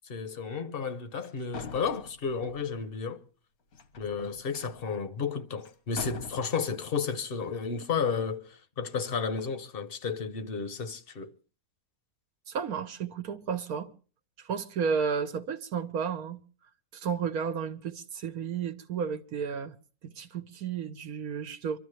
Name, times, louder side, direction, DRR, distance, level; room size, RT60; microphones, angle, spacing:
voice 1, 0.0-3.3 4.0-11.3, left 5 dB, 50° left, 0.8 m, -32 dB
sound 1, 1.2-1.3 1.5-2.7 3.7-4.8 5.6-5.7 6.0-6.3, left 5 dB, 80° left, 1.6 m, -42 dB
voice 2, 12.5-13.9 14.4-16.4 16.9-19.7 20.0-21.8, right 6 dB, 80° right, 1.4 m, -32 dB
25.0 x 12.5 x 3.2 m
omnidirectional pair, 1.5 m